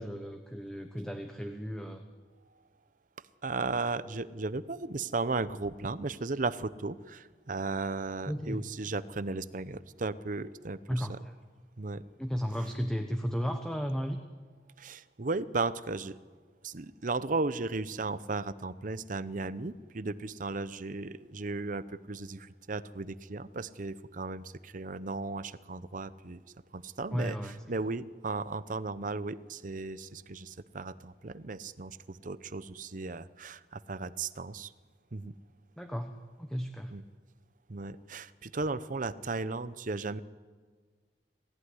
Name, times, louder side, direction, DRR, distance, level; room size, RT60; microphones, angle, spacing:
voice 1, 0.0-2.0 8.3-8.6 10.9-11.3 12.2-14.2 27.1-27.6 35.8-36.1 36.4-36.9, equal, 5° left, 5 dB, 1.1 m, -34 dB
voice 2, 3.4-11.2 11.8-12.0 14.8-16.2 16.6-26.4 26.7-34.7 35.1-35.3 36.9-37.0 37.7-40.2, right 3 dB, 50° right, 15 dB, 0.8 m, -35 dB
26.5 x 15.0 x 9.8 m, 1.5 s
head